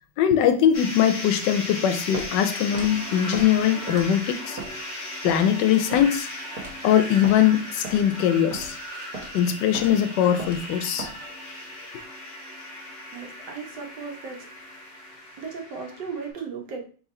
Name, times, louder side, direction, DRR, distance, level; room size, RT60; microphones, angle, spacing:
voice 1, 0.2-4.6 5.2-6.3 6.8-8.8 9.3-11.1, left 10 dB, 80° left, 9 dB, 1.2 m, -21 dB
sound 1, 0.7-16.3, left 1 dB, 35° left, 0.7 m, -37 dB
Walk footsteps, 2.1-2.3 2.7-2.9 3.3-3.5 3.9-4.2 4.6-4.7 5.3-5.4 5.9-6.1 6.6-6.8 7.2-7.4 7.8-8.0 8.5-8.7 9.1-9.3 9.7-9.9 10.4-10.6 11.0-11.2, right 3 dB, 60° right, 1.5 m, -35 dB
voice 2, 13.1-14.5 15.4-16.8, right 5 dB, 75° right, 3 dB, 1.5 m, -36 dB
3.7 x 2.9 x 4.2 m, 0.41 s
omnidirectional pair, 2.0 m